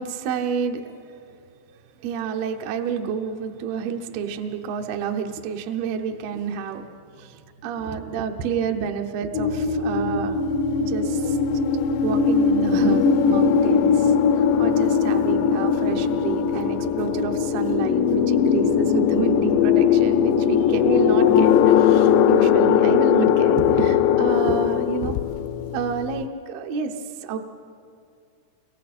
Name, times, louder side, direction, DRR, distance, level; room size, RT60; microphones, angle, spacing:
voice 1, 0.0-1.4 2.0-6.8 7.2-10.4 10.8-11.4 12.0-25.2 25.7-26.9 27.2-27.4, right 7 dB, 75° right, 4 dB, 2.3 m, -29 dB
sound 1, 9.3-26.2, left 7 dB, 85° left, 2.5 m, -20 dB
29.5 x 25.0 x 4.3 m, 2.3 s
omnidirectional pair, 5.8 m